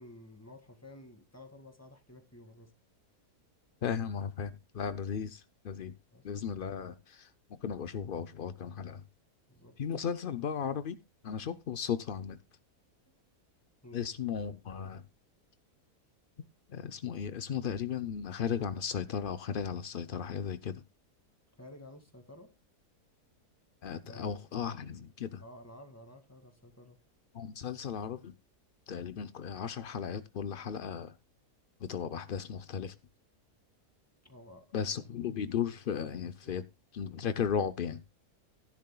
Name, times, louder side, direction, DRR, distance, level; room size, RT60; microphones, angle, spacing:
voice 1, 0.0-2.7 6.1-6.2 9.5-9.7 13.8-14.0 21.6-22.5 24.1-24.4 25.4-27.0 34.2-34.7 36.4-36.5, left 1 dB, 10° left, 1.9 m, -52 dB
voice 2, 3.8-5.9 6.2-9.0 9.8-11.0 11.2-12.4 13.9-15.0 16.7-20.8 23.8-25.4 27.3-28.3 28.9-31.1 31.8-32.9 34.7-36.6 36.9-38.0, left 7 dB, 75° left, 0.4 m, -36 dB
15.5 x 10.5 x 2.2 m
omnidirectional pair, 1.7 m